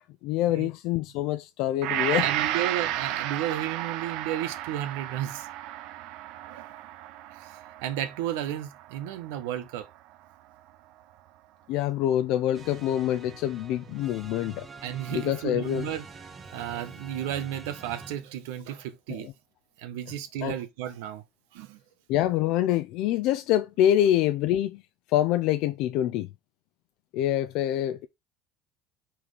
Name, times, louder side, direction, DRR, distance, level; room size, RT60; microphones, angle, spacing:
voice 1, 0.2-2.3 11.7-14.7 15.1-16.0 19.1-19.3 20.4-20.6 22.1-24.8 25.1-26.3 27.1-28.1, left 12 dB, 60° left, 0.4 m, -26 dB
Gong, 1.8-10.1 10.6-10.7, right 13 dB, 65° right, 0.6 m, -33 dB
voice 2, 2.2-5.5 6.4-6.8 7.4-9.9 14.8-16.1 16.5-19.3 19.8-21.2 21.5-21.8, right 11 dB, 85° right, 1.1 m, -33 dB
sound 1, 12.5-18.2, right 4 dB, 25° right, 1.0 m, -45 dB
6.0 x 3.2 x 5.0 m
cardioid pair, 150°, 0 cm